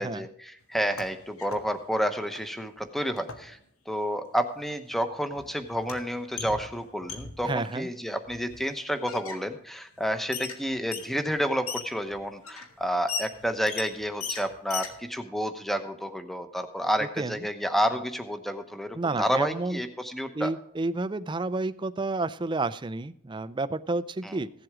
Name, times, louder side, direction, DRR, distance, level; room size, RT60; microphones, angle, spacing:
voice 1, 0.0-3.6 3.9-20.5 24.2-24.4, equal, ahead, 8 dB, 0.9 m, -30 dB
sound 1, 0.7-1.7 1.9-2.5 3.2-3.5 4.6-4.7 4.9-7.6 8.3-8.7 9.1-9.4 10.0-10.1 10.3-15.0, left 5 dB, 80° left, 1.9 m, -38 dB
voice 2, 7.4-7.9 17.2-17.4 19.0-19.8 20.3-24.5, right 3 dB, 20° right, 15 dB, 0.4 m, -30 dB
16.0 x 7.8 x 4.9 m, 0.71 s
head